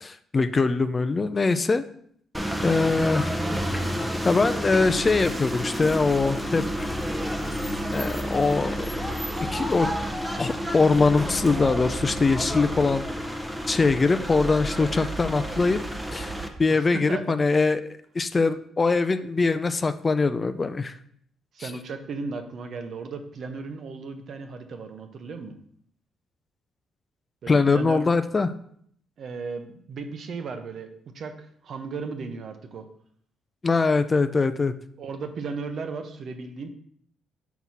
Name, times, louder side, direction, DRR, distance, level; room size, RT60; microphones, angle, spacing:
voice 1, 0.0-1.8 2.6-3.3 4.2-7.0 7.9-8.9 9.5-9.9 10.4-13.0 13.7-15.8 16.1-16.3 16.6-20.9 27.5-28.5 33.6-34.7, left 4 dB, 30° left, 10 dB, 0.4 m, -22 dB
sound 1, 2.3-16.5, equal, 5° right, 0.7 m, -30 dB
voice 2, 16.7-17.4 21.5-25.6 27.4-28.2 29.2-32.9 35.0-36.7, right 4 dB, 60° right, 7 dB, 0.8 m, -36 dB
4.7 x 3.9 x 5.7 m, 0.65 s
cardioid pair, 90°, 0 cm